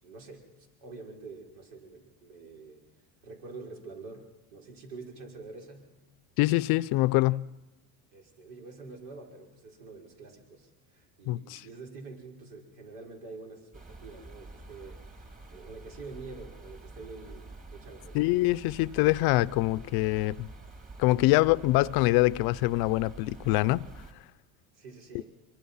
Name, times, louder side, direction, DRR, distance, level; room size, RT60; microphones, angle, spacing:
voice 1, 0.0-2.8 3.2-5.9 8.1-15.0 15.5-18.4 24.7-25.3, right 3 dB, 75° right, 5.7 m, -46 dB
voice 2, 6.4-7.5 11.3-11.6 18.1-20.5 21.0-23.9, left 19 dB, 55° left, 0.7 m, -24 dB
sound 1, 13.7-24.1, right 2 dB, 20° right, 2.4 m, -47 dB
24.0 x 23.5 x 5.7 m
supercardioid pair, 120°, 44 cm